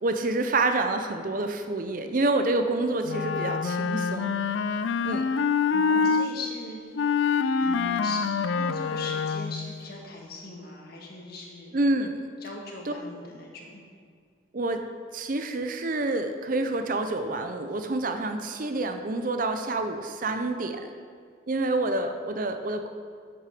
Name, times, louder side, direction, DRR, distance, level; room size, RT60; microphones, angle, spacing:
voice 1, 0.0-4.3 5.0-5.3 11.7-12.2 12.9-13.0 14.5-14.9 15.1-20.9 21.5-22.9, right 2 dB, 45° right, 7 dB, 0.6 m, -27 dB
Wind instrument woodwind instrument, 3.1-6.3 7.0-9.7, left 5 dB, 70° left, 0.4 m, -26 dB
voice 2, 5.7-6.8 7.1-7.2 7.6-8.2 8.5-11.8 12.4-13.8, left 2 dB, 50° left, -1 dB, 1.7 m, -39 dB
8.7 x 8.2 x 5.0 m, 2.1 s
head